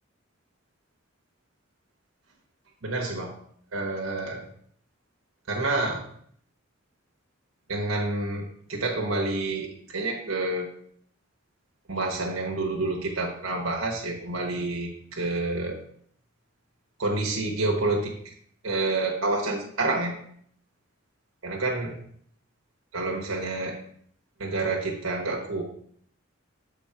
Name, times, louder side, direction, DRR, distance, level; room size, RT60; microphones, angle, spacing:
voice 1, 2.8-3.3 3.7-4.4 5.5-6.0 7.7-10.7 11.9-15.8 17.0-18.1 18.6-20.1 21.4-22.0 22.9-23.8 24.4-25.6, right 2 dB, 75° right, 0 dB, 1.1 m, -28 dB
7.0 x 3.4 x 4.7 m, 0.64 s
head